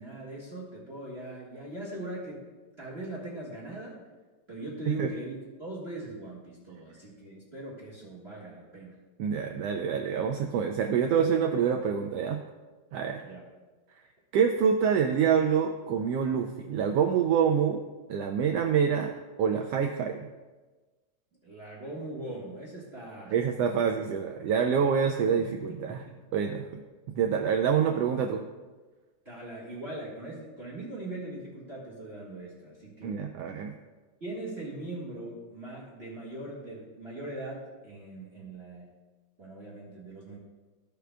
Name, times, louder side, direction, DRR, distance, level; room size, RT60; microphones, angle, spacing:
voice 1, 0.0-2.4 2.8-4.0 4.5-9.0 13.2-13.4 21.4-23.3 25.9-26.0 29.2-33.2 34.2-38.9 39.4-40.4, right 1 dB, 30° right, -4 dB, 1.2 m, -40 dB
voice 2, 9.2-12.4 12.9-13.2 14.3-17.8 18.1-20.3 23.3-26.0 26.3-26.8 27.2-28.4 33.0-33.7, right 7 dB, 85° right, 4 dB, 1.4 m, -26 dB
15.0 x 6.6 x 2.3 m, 1.3 s
omnidirectional pair, 3.3 m